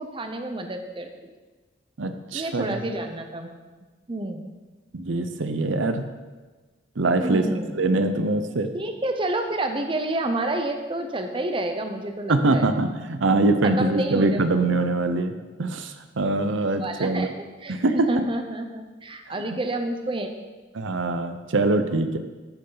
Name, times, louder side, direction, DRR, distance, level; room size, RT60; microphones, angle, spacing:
voice 1, 0.0-1.3 2.3-3.6 4.1-4.5 7.2-7.9 8.7-12.7 13.8-14.5 16.8-17.3 17.6-20.3, right 1 dB, 25° right, 6 dB, 0.8 m, -29 dB
voice 2, 2.0-2.7 4.9-6.0 7.0-7.4 7.7-8.7 12.3-15.3 15.6-17.3 17.7-18.1 19.4-19.6 20.7-22.2, right 2 dB, 90° right, 8 dB, 0.7 m, -23 dB
13.0 x 6.7 x 4.0 m, 1.3 s
head